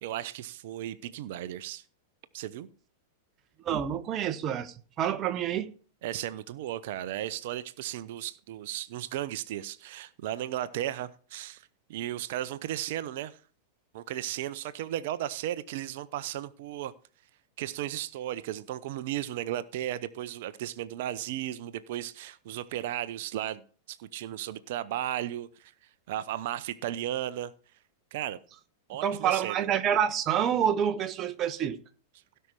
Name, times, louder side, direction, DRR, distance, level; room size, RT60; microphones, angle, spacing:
voice 1, 0.0-1.8 2.3-2.7 6.0-13.4 13.9-16.9 17.6-23.6 23.9-25.7 26.1-27.5 28.1-28.4 28.9-29.7, right 12 dB, 55° right, 0.8 m, -35 dB
voice 2, 3.6-5.7 29.0-31.8, right 9 dB, 30° right, 1.1 m, -28 dB
17.0 x 5.6 x 4.8 m
figure-of-eight pair, 95°, 0 cm